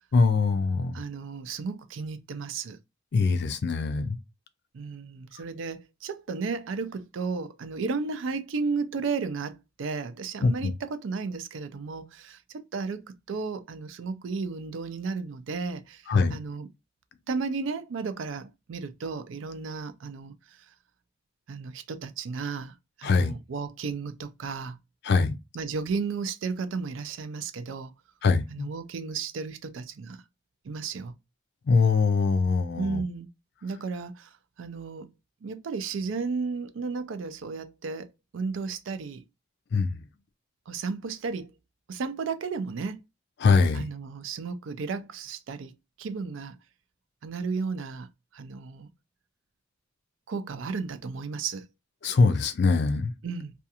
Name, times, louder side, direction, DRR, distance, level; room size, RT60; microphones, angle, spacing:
voice 1, 0.1-1.0 3.1-4.2 10.4-10.7 16.1-16.3 23.0-23.3 25.0-25.3 28.2-28.7 31.7-33.0 39.7-40.0 43.4-43.8 52.0-53.1, left 4 dB, 60° left, 0.4 m, -23 dB
voice 2, 0.9-2.8 4.7-16.7 17.3-20.7 21.5-24.8 25.5-27.9 28.5-30.2 30.6-31.2 32.8-33.3 33.6-35.1 35.4-39.2 40.7-41.5 41.9-43.0 43.7-45.7 46.0-46.6 47.2-48.9 50.3-51.7 53.2-53.5, right 4 dB, 70° right, 0.4 m, -34 dB
2.4 x 2.3 x 2.7 m
head